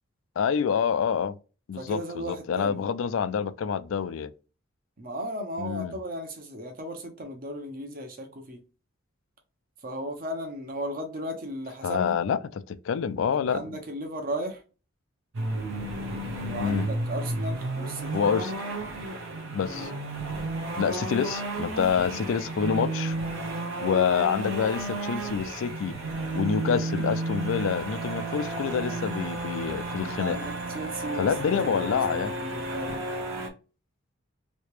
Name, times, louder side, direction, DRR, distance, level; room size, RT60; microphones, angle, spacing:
voice 1, 0.4-1.4 1.7-4.3 5.6-5.9 11.8-13.8 16.6-16.9 18.1-18.5 19.5-19.9 20.8-23.2 23.8-26.0 26.3-30.4 31.1-32.3, left 7 dB, 75° left, 0.3 m, -27 dB
voice 2, 1.8-2.8 5.0-8.6 9.8-12.1 13.5-14.6 16.4-18.1 28.8-29.0 30.0-33.0, right 1 dB, 45° right, 0.8 m, -36 dB
sound 1, 15.3-33.5, right 2 dB, 80° right, 0.8 m, -32 dB
3.2 x 2.8 x 3.1 m
head